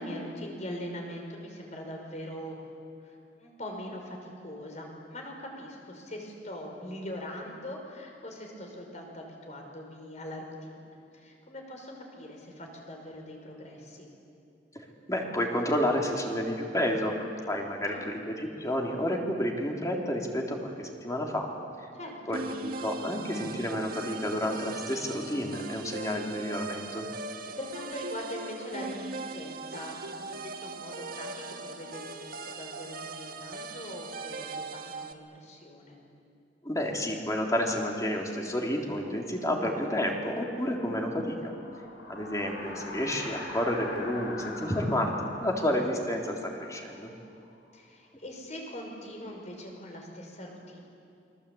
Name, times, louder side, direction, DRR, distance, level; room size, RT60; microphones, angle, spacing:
voice 1, 0.0-2.7 3.0-10.8 11.1-14.1 17.9-18.0 21.9-22.4 27.6-36.0 42.6-42.9 47.7-50.8, left 1 dB, 40° left, 2 dB, 5.7 m, -42 dB
voice 2, 15.1-17.1 17.4-21.5 22.3-27.0 36.6-41.5 42.1-45.1 45.4-47.1, equal, 20° left, 0 dB, 3.6 m, -30 dB
sound 1, 22.3-35.1, right 3 dB, 55° right, 1.4 m, -40 dB
sound 2, 39.1-47.8, left 2 dB, 80° left, 5.2 m, -44 dB
29.0 x 24.0 x 8.7 m, 2.6 s
head